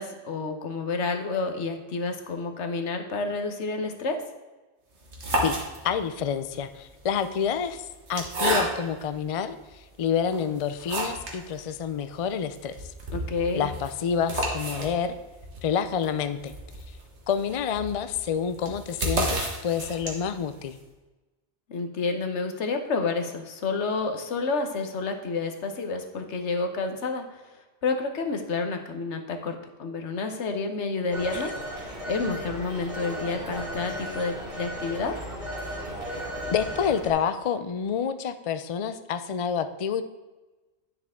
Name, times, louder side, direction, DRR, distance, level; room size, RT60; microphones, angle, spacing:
voice 1, 0.0-4.2 13.1-13.7 21.7-27.2 27.8-35.2, left 4 dB, 85° left, 5 dB, 1.2 m, -29 dB
sound 1, 5.0-6.2 7.0-9.1 9.7-9.8 10.3-11.4 11.7-11.8 12.1-12.2 12.6-20.4, right 1 dB, 80° right, 1.8 m, -31 dB
voice 2, 5.8-9.6 10.0-12.7 13.6-15.2 15.6-16.5 17.3-20.8 31.3-31.4 36.5-40.0, left 7 dB, 55° left, 10 dB, 0.3 m, -28 dB
Telephone, 31.1-37.1, equal, 55° right, 3.0 m, -35 dB
9.8 x 6.9 x 3.6 m, 1.2 s
omnidirectional pair, 1.2 m